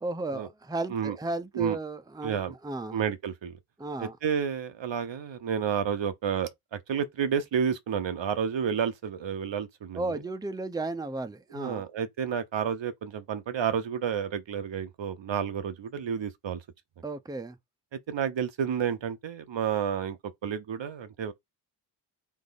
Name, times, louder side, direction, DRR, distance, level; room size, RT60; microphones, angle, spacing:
voice 1, 0.0-3.0 3.8-4.2 9.9-11.8 17.0-17.6, right 2 dB, 10° right, 0.7 m, -34 dB
voice 2, 2.2-2.5 2.9-3.6 4.0-10.0 11.5-16.6 18.1-21.3, right 7 dB, 60° right, 0.9 m, -30 dB
3.6 x 3.5 x 4.0 m
cardioid pair, 50°, 50 cm